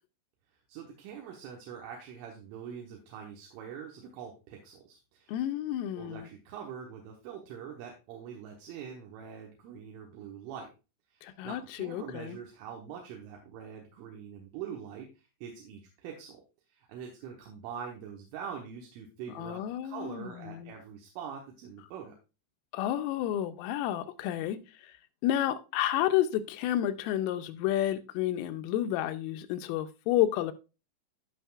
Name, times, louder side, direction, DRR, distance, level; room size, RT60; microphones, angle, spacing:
voice 1, 0.7-5.4 6.0-10.7 11.1-16.4 16.7-22.2, right 7 dB, 80° right, 3.5 m, -44 dB
voice 2, 5.3-6.3 11.2-12.4 19.4-20.7 22.7-24.6 25.2-30.5, left 12 dB, 85° left, 3.2 m, -30 dB
14.5 x 5.9 x 2.4 m
omnidirectional pair, 5.7 m